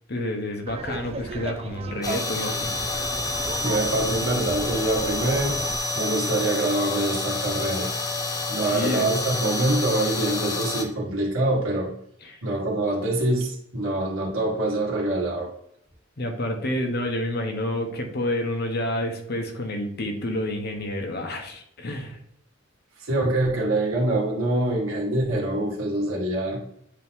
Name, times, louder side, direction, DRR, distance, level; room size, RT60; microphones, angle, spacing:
voice 1, 0.1-2.7 8.7-9.1 12.2-12.4 16.2-22.2, left 1 dB, 50° left, 1.1 m, -29 dB
Laughter, 0.7-5.8, right 3 dB, 30° right, 0.4 m, -35 dB
sound 1, 2.0-10.9, left 2 dB, 20° left, 0.6 m, -28 dB
voice 2, 3.6-5.6 6.0-7.9 8.5-11.9 12.4-15.6 23.0-26.6, right 2 dB, 75° right, 1.9 m, -25 dB
8.5 x 3.0 x 3.6 m
head